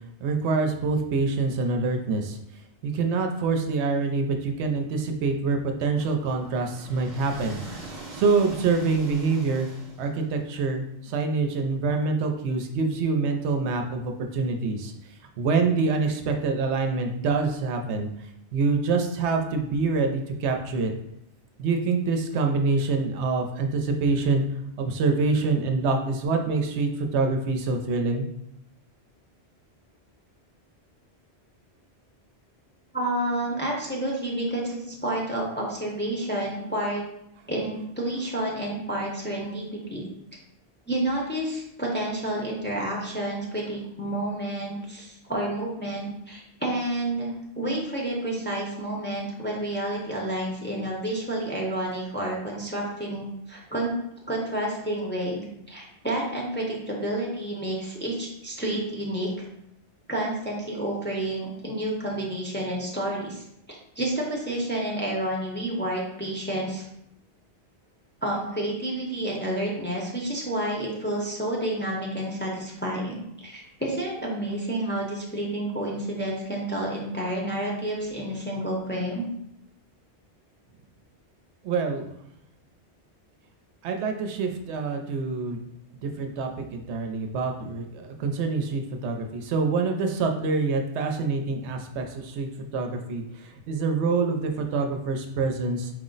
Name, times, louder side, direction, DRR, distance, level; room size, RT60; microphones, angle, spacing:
voice 1, 0.2-2.4 2.8-7.6 8.1-9.7 10.0-14.9 15.4-18.1 18.5-20.9 21.6-24.4 24.8-28.2 81.6-82.1 83.8-85.6 86.0-95.9, right 4 dB, 85° right, 4 dB, 0.9 m, -26 dB
sound 1, 6.0-10.4, right 2 dB, 45° right, 0.8 m, -42 dB
voice 2, 32.9-37.0 37.5-40.0 40.9-53.9 54.3-59.5 60.1-66.9 68.2-79.3, right 1 dB, 15° left, -3 dB, 0.5 m, -30 dB
4.7 x 2.0 x 3.8 m, 0.78 s
omnidirectional pair, 1.1 m